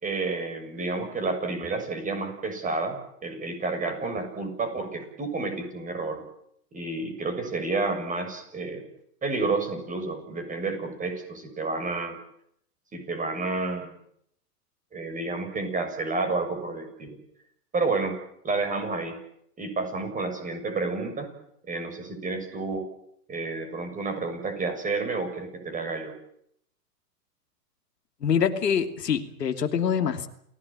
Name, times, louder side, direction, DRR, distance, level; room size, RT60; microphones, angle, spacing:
voice 1, 0.0-3.0 3.2-6.2 6.7-8.8 9.2-12.2 12.9-13.9 14.9-17.2 17.7-18.2 18.4-19.2 19.6-21.3 21.7-22.9 23.3-26.1, right 3 dB, 15° right, 7 dB, 6.9 m, -30 dB
voice 2, 28.2-30.3, left 7 dB, 90° left, 6 dB, 2.9 m, -25 dB
29.0 x 17.0 x 8.9 m, 0.72 s
hypercardioid pair, 130°, 47 cm